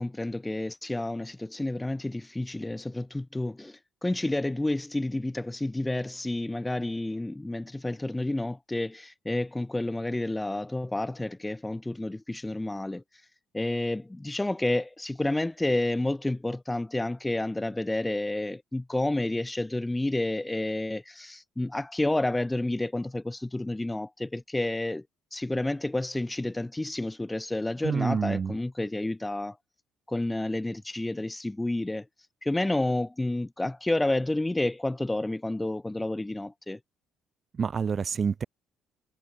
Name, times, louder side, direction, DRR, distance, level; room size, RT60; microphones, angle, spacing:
voice 1, 0.0-13.0 13.5-25.0 25.3-29.6 30.1-32.0 32.4-36.8, left 2 dB, 10° left, 0.4 m, -30 dB
voice 2, 27.8-28.5 37.5-38.4, right 6 dB, 35° right, 1.9 m, -27 dB
cardioid pair, 120°, 0 cm